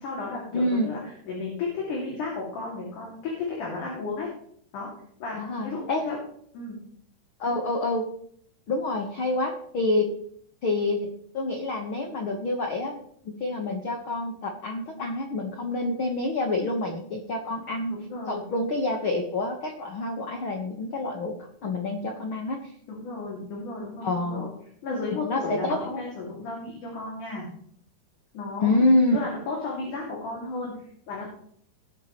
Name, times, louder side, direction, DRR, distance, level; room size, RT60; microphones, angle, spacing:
voice 1, 0.0-4.3 4.7-4.9 5.2-6.2 6.5-6.8 17.9-18.4 22.9-24.5 24.8-27.5 28.3-30.7 31.1-31.3, left 3 dB, 55° left, -3 dB, 3.8 m, -34 dB
voice 2, 0.5-0.9 5.3-6.0 7.4-8.1 8.7-10.1 10.6-11.1 11.3-13.0 13.2-18.0 18.3-22.7 24.0-24.4 25.2-25.9 28.6-29.2, left 2 dB, 75° left, 2 dB, 1.1 m, -27 dB
19.5 x 8.2 x 3.2 m, 0.64 s
omnidirectional pair, 4.6 m